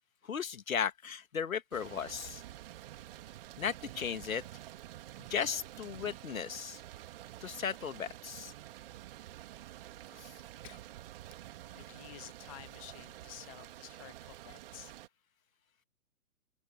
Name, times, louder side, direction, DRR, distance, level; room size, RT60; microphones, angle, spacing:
voice 1, 0.2-2.4 3.6-4.4 5.2-6.8 7.4-8.5 10.1-10.3, left 7 dB, 60° left, 2.1 m, -36 dB
sound 1, 1.7-15.1, right 14 dB, 35° right, 3.4 m, -49 dB
voice 2, 11.7-14.9, left 18 dB, 25° left, 0.9 m, -51 dB
open air
figure-of-eight pair, 130°, 46 cm